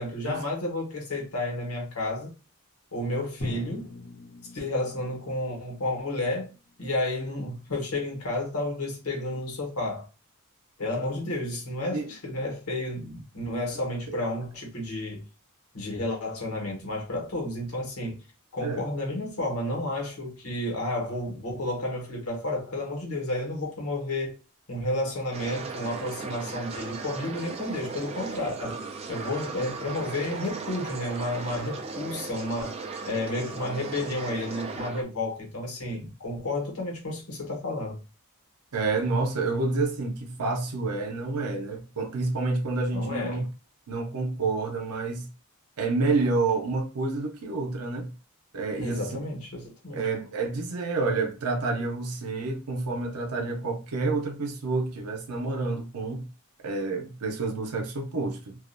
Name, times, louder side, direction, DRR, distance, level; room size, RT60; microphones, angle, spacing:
voice 1, 0.0-2.3 2.9-3.9 4.5-6.5 6.8-10.1 10.8-15.2 15.7-18.2 18.5-24.3 24.7-28.8 29.1-32.8 33.0-38.0 42.9-43.4 48.8-50.1, left 1 dB, 90° left, 1.0 m, -31 dB
Drum, 3.4-7.4, left 1 dB, 55° left, 1.0 m, -40 dB
sound 1, 25.3-35.0, right 4 dB, 30° right, 0.3 m, -37 dB
voice 2, 38.7-43.4 43.9-45.3 45.8-48.1 48.5-49.1 49.9-56.2 56.6-58.6, right 3 dB, 90° right, 0.6 m, -29 dB
2.4 x 2.1 x 2.4 m
head